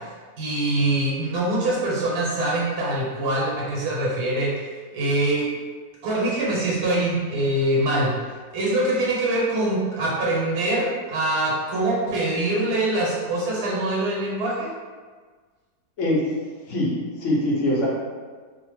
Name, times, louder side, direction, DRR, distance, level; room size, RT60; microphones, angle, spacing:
voice 1, 0.4-4.5 4.9-5.5 6.0-8.2 8.5-14.7, right 1 dB, 85° right, -5 dB, 1.2 m, -24 dB
voice 2, 17.2-17.9, left 1 dB, 65° left, -5 dB, 0.9 m, -22 dB
2.7 x 2.0 x 3.0 m, 1.5 s
omnidirectional pair, 1.6 m